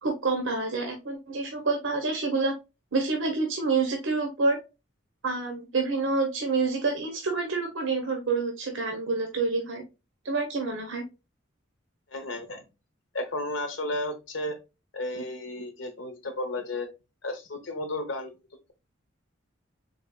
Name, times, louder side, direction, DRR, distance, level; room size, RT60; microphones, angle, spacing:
voice 1, 0.0-2.5 2.9-4.6 5.2-9.8 10.2-11.1, right 3 dB, 90° right, 3 dB, 0.8 m, -27 dB
voice 2, 12.1-12.6 13.1-14.6 14.9-16.9 17.2-18.3, left 1 dB, 80° left, 6 dB, 0.9 m, -33 dB
3.9 x 3.4 x 2.2 m, 0.27 s
head